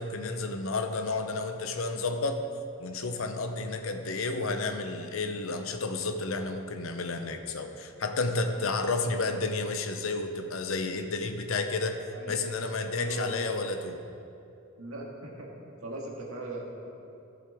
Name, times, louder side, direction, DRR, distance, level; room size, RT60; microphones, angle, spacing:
voice 1, 0.0-2.4 2.8-12.0 12.3-14.0, left 3 dB, 65° left, 6 dB, 0.7 m, -31 dB
voice 2, 13.0-13.4 14.8-16.9, right 2 dB, 75° right, -2 dB, 1.8 m, -39 dB
14.0 x 7.5 x 3.5 m, 2.7 s
head